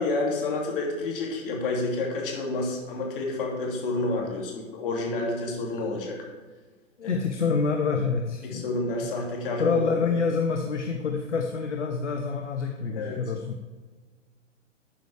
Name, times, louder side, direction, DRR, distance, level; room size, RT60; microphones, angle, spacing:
voice 1, 0.0-6.2 7.0-7.2 8.4-9.6 13.0-13.2, left 2 dB, 45° left, -1 dB, 2.9 m, -29 dB
voice 2, 7.0-9.1 9.6-13.6, left 5 dB, 65° left, 4 dB, 1.1 m, -27 dB
12.0 x 9.2 x 3.5 m, 1.4 s
figure-of-eight pair, 120°, 39 cm